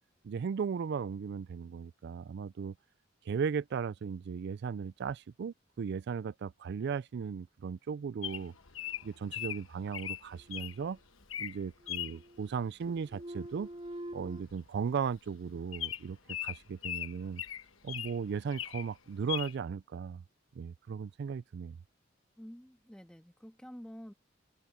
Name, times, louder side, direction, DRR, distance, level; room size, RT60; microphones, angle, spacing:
voice 1, 0.2-2.7 3.3-8.5 9.0-11.0 11.4-13.7 14.1-17.4 17.8-20.2 20.6-21.8, right 6 dB, 55° right, 0.3 m, -36 dB
Bird vocalization bird call bird song, 8.2-10.8 11.2-11.6 11.9-12.2 13.6-13.9 14.1-14.2 14.5-14.7 15.1-15.2 15.7-18.2 18.5-18.9 19.3-19.5, left 12 dB, 80° left, 1.1 m, -39 dB
sound 1, 10.3-11.3 11.6-12.5 12.8-14.4, right 1 dB, 30° right, 3.7 m, -46 dB
voice 2, 22.4-24.1, equal, 5° left, 1.8 m, -49 dB
open air
head